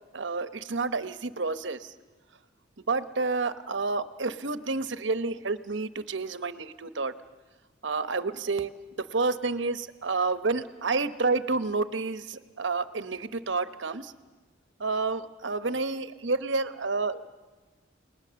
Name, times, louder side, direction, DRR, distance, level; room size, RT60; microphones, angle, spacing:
voice 1, 0.1-1.9 2.9-7.1 7.8-8.7 9.0-14.1 14.8-17.3, right 3 dB, 70° right, 12 dB, 1.0 m, -29 dB
30.0 x 19.5 x 7.0 m, 1.3 s
head